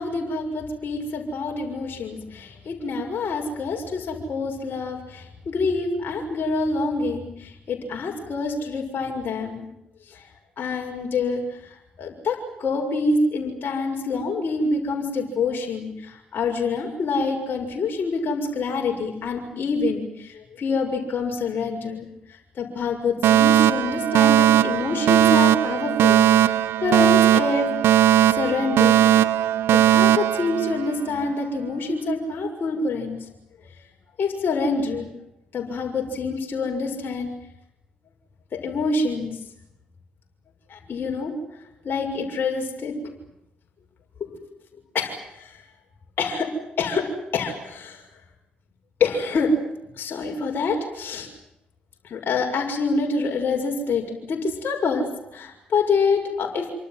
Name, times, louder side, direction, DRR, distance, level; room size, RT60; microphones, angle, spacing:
voice 1, 0.0-9.7 10.1-10.2 10.6-29.2 29.7-33.2 34.2-35.1 35.5-37.3 38.6-39.4 40.7-41.3 41.8-42.9 44.9-45.6 46.2-46.5 46.8-47.1 47.3-48.0 49.0-49.5 50.0-51.3 52.0-56.8, left 3 dB, 50° left, 1 dB, 6.7 m, -26 dB
Alarm, 23.2-31.2, right 11 dB, 65° right, 1.1 m, -18 dB
27.5 x 26.0 x 7.8 m, 0.85 s
hypercardioid pair, 45°, 4 cm